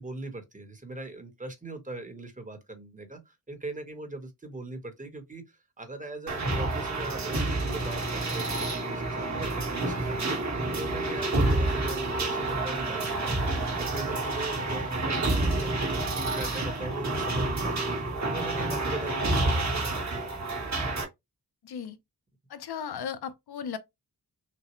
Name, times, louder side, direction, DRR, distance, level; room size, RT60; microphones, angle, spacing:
voice 1, 0.0-13.5 13.8-17.9 18.3-19.9, right 2 dB, 20° right, 1.1 m, -40 dB
sound 1, 6.3-21.0, right 2 dB, 45° right, 1.3 m, -29 dB
voice 2, 21.6-22.0 22.5-23.8, left 7 dB, 75° left, 0.7 m, -36 dB
6.1 x 2.1 x 3.1 m
wide cardioid pair, 130°, 39 cm